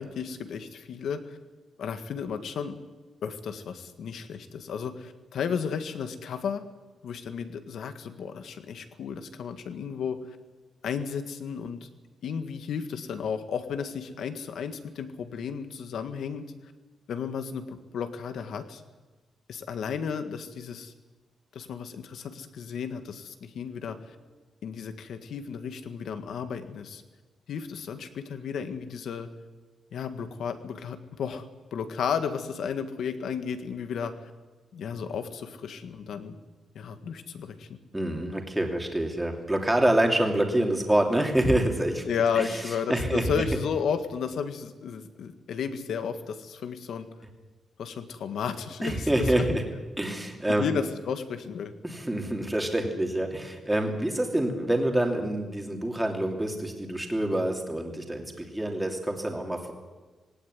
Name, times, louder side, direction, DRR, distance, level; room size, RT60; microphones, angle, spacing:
voice 1, 0.0-1.4 1.8-2.8 3.2-6.6 7.0-10.4 10.8-11.9 12.2-16.5 17.1-18.8 19.5-20.9 21.5-24.2 24.6-27.0 27.5-29.3 29.9-31.5 31.7-34.3 34.7-36.4 36.7-37.8 42.1-47.1 47.8-49.1 49.5-49.6 50.6-51.7, left 6 dB, 70° left, 9 dB, 1.8 m, -33 dB
voice 2, 37.9-42.1 42.4-42.6 42.9-43.4 48.8-49.6 50.0-50.7 51.8-59.7, right 1 dB, 5° right, 2 dB, 2.8 m, -26 dB
19.0 x 18.0 x 9.6 m, 1.3 s
wide cardioid pair, 165°, 0 cm